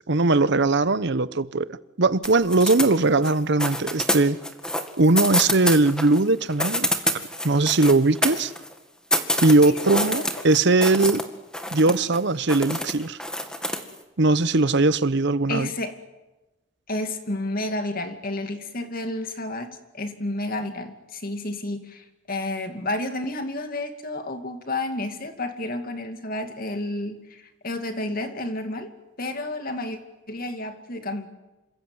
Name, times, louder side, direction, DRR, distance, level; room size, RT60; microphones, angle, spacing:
voice 1, 0.1-1.7 2.0-4.4 5.0-6.9 7.4-8.5 9.4-11.3 11.7-13.2 14.2-15.7, right 2 dB, 55° right, 0.9 m, -20 dB
sound 1, 2.2-3.3 3.6-6.2 6.5-8.7 9.1-11.2 11.5-12.2 12.5-13.9, left 1 dB, 5° left, 2.0 m, -26 dB
voice 2, 15.5-16.0 16.9-28.9 29.2-30.0 30.3-31.3, left 2 dB, 45° left, 2.5 m, -31 dB
27.5 x 25.0 x 8.0 m
head